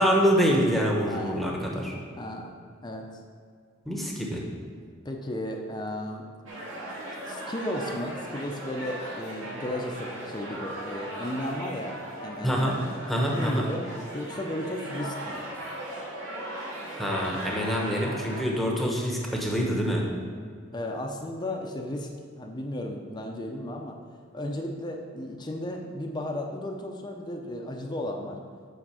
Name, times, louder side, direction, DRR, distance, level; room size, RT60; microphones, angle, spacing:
voice 1, 0.0-2.0 3.9-4.4 12.4-12.8 13.1-13.6 16.9-20.1, equal, ahead, -1 dB, 1.0 m, -25 dB
voice 2, 1.1-1.5 2.1-2.5 2.8-3.2 5.0-6.3 7.3-12.8 13.3-13.8 14.1-15.4 20.7-22.1 22.4-24.0 24.3-28.4, left 1 dB, 20° left, 2 dB, 0.6 m, -34 dB
sound 1, 6.5-18.4, right 1 dB, 90° right, 2.1 m, -38 dB
6.1 x 5.1 x 6.8 m, 2.1 s
head